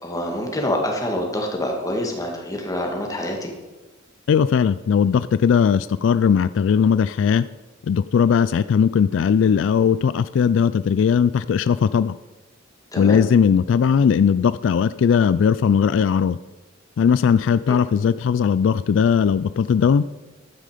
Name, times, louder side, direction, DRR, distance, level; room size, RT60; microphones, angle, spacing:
voice 1, 0.0-3.5 12.9-13.2 17.7-17.8, left 1 dB, 15° left, 1 dB, 1.9 m, -26 dB
voice 2, 4.3-7.4 7.8-12.1 13.0-16.4 17.0-20.1, left 7 dB, 70° left, 15 dB, 0.3 m, -18 dB
12.0 x 9.3 x 5.0 m, 1.2 s
head